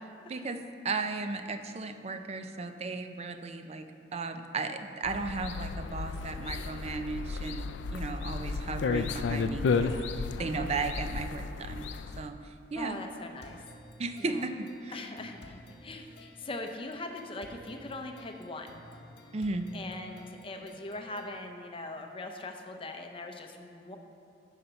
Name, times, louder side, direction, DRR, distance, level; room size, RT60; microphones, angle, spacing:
voice 1, 0.3-0.6 0.8-3.9 4.1-11.9 12.2-12.4 12.7-13.0 14.0-15.0 19.3-19.7, right 3 dB, 35° right, 8 dB, 0.5 m, -35 dB
sound 1, 5.0-12.3, left 4 dB, 80° left, 0.4 m, -33 dB
voice 2, 10.4-10.7 12.8-13.6 14.2-14.5 14.9-18.8 19.7-24.0, left 2 dB, 30° left, 4 dB, 0.6 m, -41 dB
sound 2, 13.4-21.4, left 1 dB, 60° left, 0.8 m, -53 dB
9.2 x 5.7 x 5.7 m, 2.4 s
head